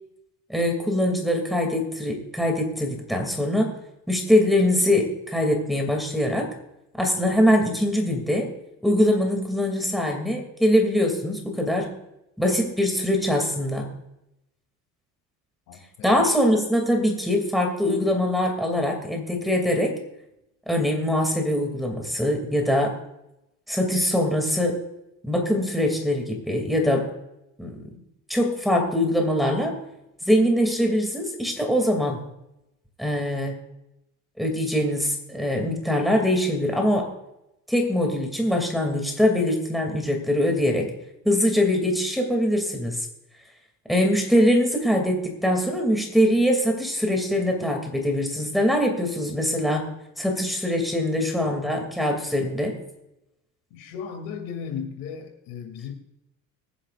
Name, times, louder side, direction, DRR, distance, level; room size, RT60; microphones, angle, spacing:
voice 1, 0.5-3.7 4.1-6.5 7.0-8.5 8.8-11.9 12.4-13.9 16.0-20.0 20.7-22.9 23.7-24.8 25.2-27.1 27.6-27.8 28.3-29.7 30.3-32.2 33.0-33.5 34.4-37.1 37.7-40.9 41.2-43.0 43.9-49.9 50.2-52.8, left 1 dB, ahead, 2 dB, 2.6 m, -23 dB
voice 2, 15.7-16.1 51.1-51.3 53.7-55.9, left 7 dB, 85° left, 6 dB, 2.8 m, -36 dB
24.5 x 10.0 x 2.5 m, 0.87 s
cardioid pair, 145°, 30 cm